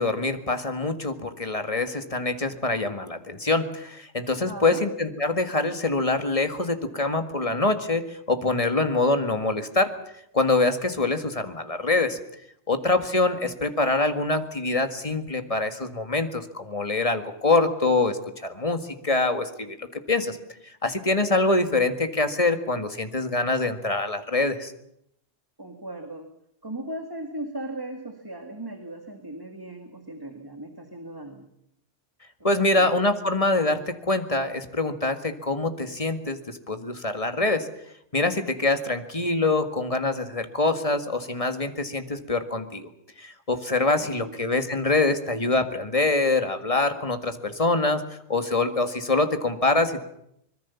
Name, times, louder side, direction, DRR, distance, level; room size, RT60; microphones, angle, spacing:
voice 1, 0.0-9.9 10.3-12.2 12.7-20.4 20.8-24.7 32.4-37.7 38.1-42.9 43.2-50.0, left 2 dB, 30° left, 8 dB, 1.9 m, -25 dB
voice 2, 4.4-4.9 13.3-13.6 25.6-26.3 26.6-31.5 32.4-32.9 44.0-44.4, right 1 dB, 20° right, 5 dB, 2.0 m, -38 dB
24.5 x 21.5 x 7.1 m, 0.75 s
omnidirectional pair, 1.2 m